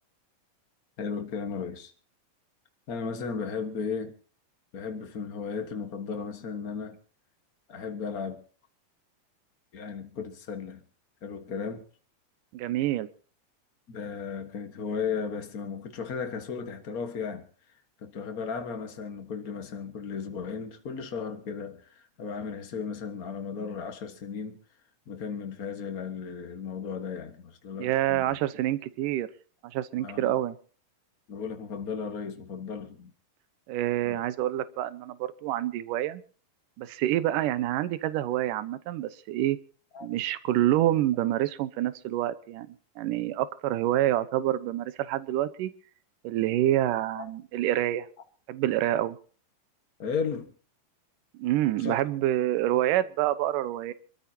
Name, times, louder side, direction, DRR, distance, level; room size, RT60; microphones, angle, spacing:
voice 1, 1.0-1.9 2.9-4.2 4.7-7.0 7.7-8.4 9.7-10.8 11.2-11.9 13.9-17.5 18.0-24.6 25.1-28.4 30.0-30.3 31.3-33.1 34.0-34.2 39.9-40.1 47.1-47.3 50.0-50.5 51.8-52.0, left 6 dB, 75° left, 0.8 m, -35 dB
voice 2, 12.5-13.1 27.8-29.3 29.7-30.6 33.7-36.2 36.8-39.6 40.0-42.7 43.0-45.7 46.2-48.1 48.5-49.2 51.4-53.9, right 13 dB, 75° right, 2.4 m, -27 dB
27.0 x 13.5 x 2.8 m
omnidirectional pair, 4.1 m